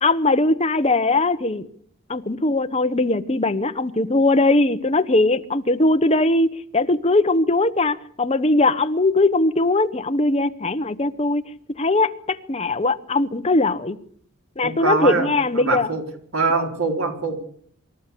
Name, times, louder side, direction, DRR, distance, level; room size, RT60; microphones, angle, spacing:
voice 1, 0.0-1.7 2.1-11.4 11.8-14.0 14.6-15.9, left 2 dB, 30° left, 1.1 m, -20 dB
voice 2, 14.6-15.3 15.5-16.0 16.3-17.4, right 3 dB, 90° right, 4.4 m, -23 dB
24.5 x 13.5 x 8.5 m
head